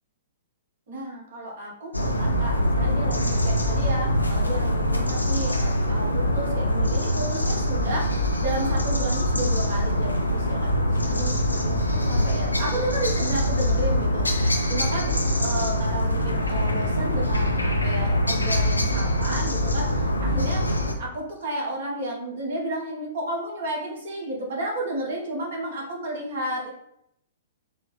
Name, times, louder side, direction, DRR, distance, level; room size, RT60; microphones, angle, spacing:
voice 1, 0.9-19.9 20.2-20.7 21.0-26.7, right 1 dB, 55° right, -2 dB, 1.1 m, -32 dB
sound 1, 1.9-20.9, equal, 85° left, 0.4 m, -24 dB
3.8 x 2.1 x 3.1 m, 0.75 s
figure-of-eight pair, 110°, 0 cm